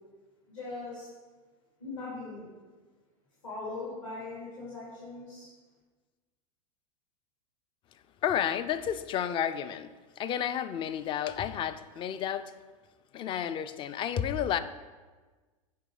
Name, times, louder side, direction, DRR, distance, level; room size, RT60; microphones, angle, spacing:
voice 1, 0.5-1.1 1.8-2.5 3.4-5.5, left 3 dB, 60° left, 2.5 m, -40 dB
voice 2, 8.2-9.9 10.2-12.5 13.1-14.6, left 9 dB, 30° left, 0.4 m, -31 dB
9.3 x 5.1 x 3.8 m
figure-of-eight pair, 90°, 18 cm